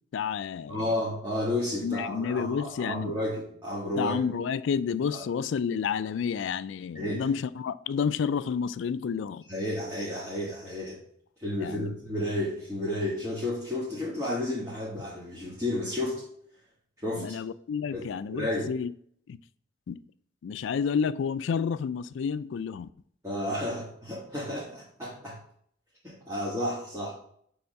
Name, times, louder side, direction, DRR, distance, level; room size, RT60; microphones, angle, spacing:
voice 1, 0.1-0.9 1.8-3.2 4.0-9.4 11.6-11.9 17.2-18.9 19.3-19.4 19.9-20.0 20.4-22.9, left 6 dB, 75° left, 0.3 m, -30 dB
voice 2, 0.7-4.2 6.9-7.2 9.5-11.0 11.4-16.2 17.0-17.4 17.9-18.7 23.2-25.4 26.0-27.1, left 1 dB, 15° right, 1.5 m, -32 dB
7.0 x 3.5 x 5.4 m
head